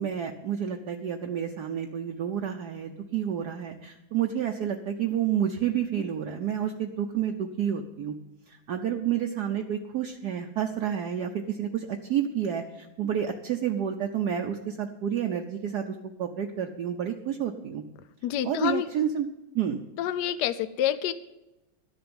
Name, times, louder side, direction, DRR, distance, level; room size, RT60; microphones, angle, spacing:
voice 1, 0.0-8.1 8.5-17.8 18.4-19.3 19.5-19.8, right 9 dB, 60° right, 4 dB, 1.2 m, -30 dB
voice 2, 18.2-18.9 20.0-21.1, left 11 dB, 70° left, 12 dB, 1.0 m, -27 dB
12.5 x 6.9 x 9.7 m, 0.96 s
omnidirectional pair, 2.2 m